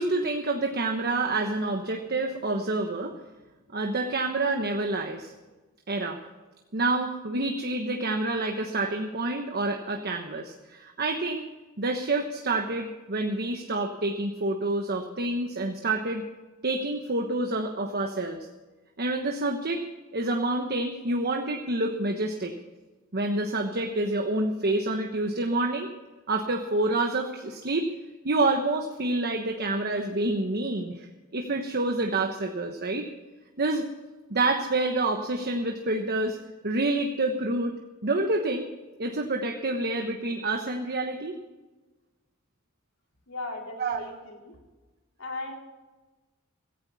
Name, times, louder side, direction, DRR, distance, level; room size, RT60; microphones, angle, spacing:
voice 1, 0.0-3.1 3.7-5.3 5.9-6.2 6.7-11.4 11.8-16.2 16.6-18.5 19.0-19.8 20.1-22.5 23.1-25.9 26.3-27.9 28.2-33.1 33.6-33.8 34.3-36.4 36.6-38.7 39.0-41.3 43.8-44.0, right 2 dB, 50° right, 3 dB, 1.2 m, -28 dB
voice 2, 43.3-44.6 45.2-45.6, left 2 dB, 85° left, 0 dB, 4.2 m, -37 dB
16.5 x 15.5 x 4.2 m, 1.2 s
head